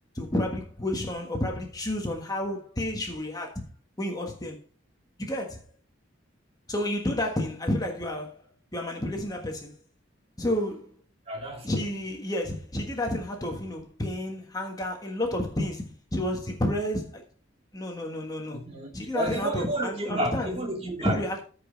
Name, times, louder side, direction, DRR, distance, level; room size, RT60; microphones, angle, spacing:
voice 1, 0.1-3.6 4.0-4.6 5.2-5.6 6.7-8.4 8.7-9.7 10.4-10.8 11.6-17.2 17.7-18.6 18.9-20.5 21.0-21.4, left 1 dB, 20° left, 1.5 m, -30 dB
voice 2, 11.3-11.7 18.5-21.2, right 1 dB, 30° right, 2.6 m, -31 dB
14.5 x 5.3 x 4.0 m
head